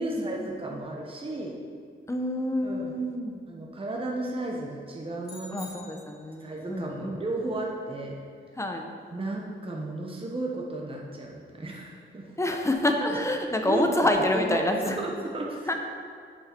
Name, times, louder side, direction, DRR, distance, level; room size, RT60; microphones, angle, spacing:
voice 1, 0.0-1.5 2.6-2.9 3.5-5.5 6.4-8.2 9.1-12.3 13.6-15.7, right 2 dB, 25° right, -1 dB, 1.0 m, -34 dB
voice 2, 2.1-3.3 5.5-7.2 8.6-8.8 12.4-15.0 15.7-15.8, left 1 dB, 15° left, 3 dB, 0.8 m, -27 dB
sound 1, 5.2-6.6, left 2 dB, 50° left, 1.8 m, -47 dB
8.4 x 6.4 x 4.5 m, 2.1 s
wide cardioid pair, 105°, 21 cm